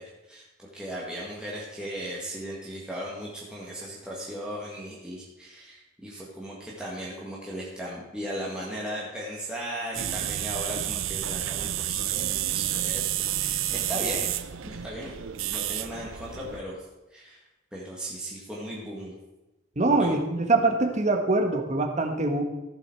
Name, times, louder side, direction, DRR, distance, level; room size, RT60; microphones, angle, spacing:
voice 1, 0.0-15.1 15.5-17.4 17.7-19.1 20.0-20.2, equal, 5° right, -5 dB, 1.7 m, -37 dB
sound 1, 9.9-16.6, right 12 dB, 75° right, 0.5 m, -30 dB
voice 2, 19.8-22.4, right 2 dB, 35° right, 4 dB, 1.3 m, -23 dB
15.0 x 7.1 x 4.5 m, 1.1 s
head